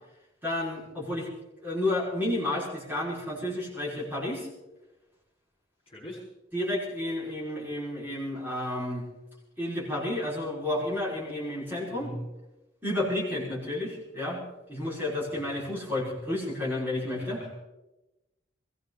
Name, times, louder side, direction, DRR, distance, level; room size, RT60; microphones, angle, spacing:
voice 1, 0.4-1.3 1.6-4.5 6.5-9.1 9.6-12.1 12.8-17.4, left 1 dB, 10° right, -6 dB, 5.4 m, -31 dB
voice 2, 5.9-6.2 11.9-12.2 17.2-17.6, equal, 30° left, -4 dB, 4.5 m, -40 dB
21.5 x 16.5 x 4.1 m, 1.0 s
head